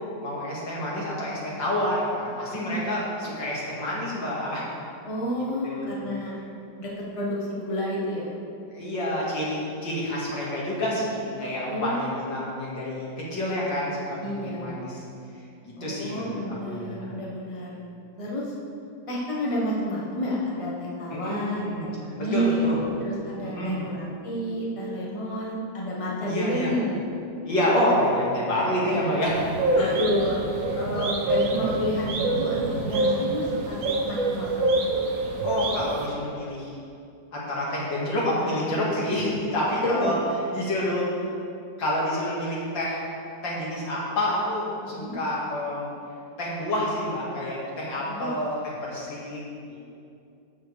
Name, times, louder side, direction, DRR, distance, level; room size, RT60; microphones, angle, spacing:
voice 1, 0.2-4.7 5.3-6.0 8.7-15.0 15.6-16.4 16.7-17.1 21.1-21.9 22.2-22.8 23.4-23.9 26.2-26.7 27.4-30.0 31.3-31.4 35.4-36.8 37.3-40.1 40.5-41.1 41.8-43.0 43.4-45.9 46.4-48.6 48.8-49.4 49.7-49.8, left 1 dB, 80° left, -6 dB, 2.8 m, -28 dB
voice 2, 5.0-6.3 6.8-8.3 11.7-12.1 14.2-14.8 15.8-17.8 18.2-18.5 19.1-22.7 23.0-27.0 28.9-29.1 29.7-30.4 30.7-34.6 39.8-40.1 44.8-45.1 48.1-48.3, equal, 20° left, -5 dB, 1.4 m, -30 dB
sound 1, 29.3-36.1, right 2 dB, 60° right, 1.0 m, -26 dB
12.5 x 7.6 x 3.5 m, 2.5 s
omnidirectional pair, 2.0 m